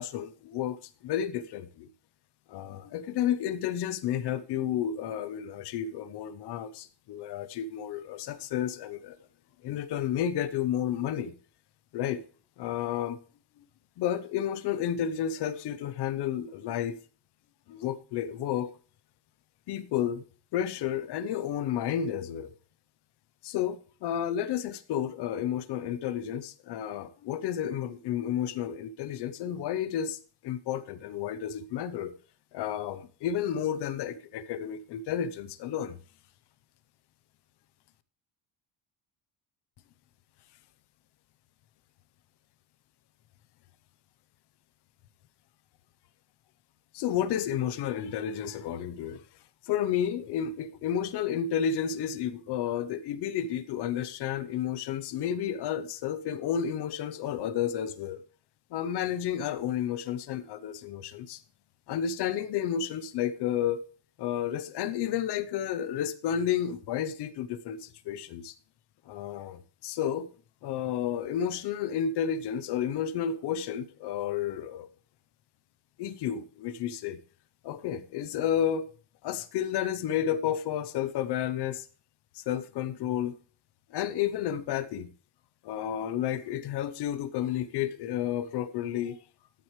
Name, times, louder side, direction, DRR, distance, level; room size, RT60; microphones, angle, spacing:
voice 1, 0.0-1.9 2.5-9.2 9.6-11.3 11.9-12.2 12.6-13.2 14.0-17.0 17.7-18.7 19.7-20.2 20.5-22.5 23.4-32.1 32.5-36.0 46.9-49.2 49.7-58.2 58.7-61.4 61.9-63.8 64.2-68.5 69.1-70.3 70.6-74.9 76.0-77.2 77.6-78.9 79.2-81.9 82.3-83.3 83.9-85.1 85.6-89.2, left 9 dB, 55° left, 0.9 m, -31 dB
13.5 x 7.8 x 3.3 m
cardioid pair, 175°, 47 cm